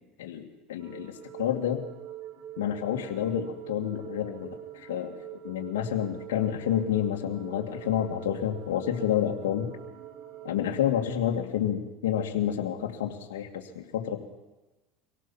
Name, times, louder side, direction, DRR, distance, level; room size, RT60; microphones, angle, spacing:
voice 1, 0.2-1.8 2.6-5.1 5.4-9.7 10.4-14.2, left 10 dB, 90° left, 1 dB, 2.5 m, -29 dB
sound 1, 0.8-10.8, right 11 dB, 70° right, 3.9 m, -44 dB
25.0 x 17.5 x 7.4 m, 1.1 s
supercardioid pair, 105°, 0 cm